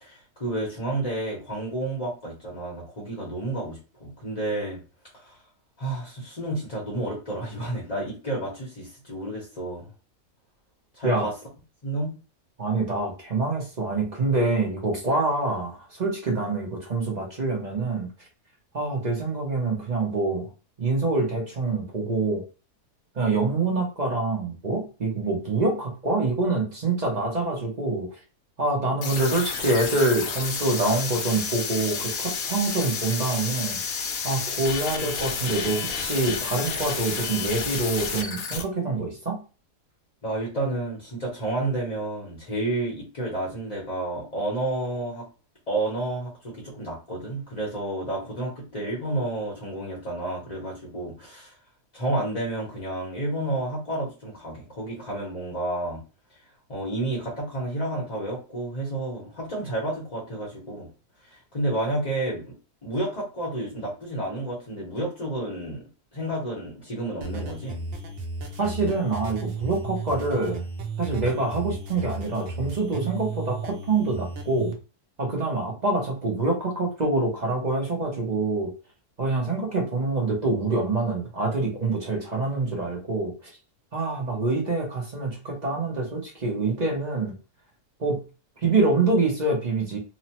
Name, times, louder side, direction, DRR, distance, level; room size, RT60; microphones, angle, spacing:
voice 1, 0.0-4.8 5.1-5.4 5.8-9.9 10.9-11.3 11.8-12.2 40.2-45.3 45.7-51.5 51.9-56.0 56.7-60.9 61.2-62.5 62.8-65.8 66.1-67.8, right 1 dB, 30° left, -4 dB, 0.7 m, -30 dB
voice 2, 12.6-18.1 18.7-20.5 20.8-22.4 23.1-28.1 28.6-33.8 34.2-39.4 68.6-70.6 71.0-74.7 75.2-78.7 79.2-83.5 83.9-87.3 88.0-88.2 88.6-90.0, right 3 dB, 40° right, -1 dB, 0.6 m, -26 dB
sound 1, 29.0-38.6, left 6 dB, 70° left, 1.0 m, -30 dB
sound 2, 67.2-74.7, right 3 dB, 90° right, 0.5 m, -34 dB
3.0 x 2.1 x 2.9 m, 0.33 s
omnidirectional pair, 1.7 m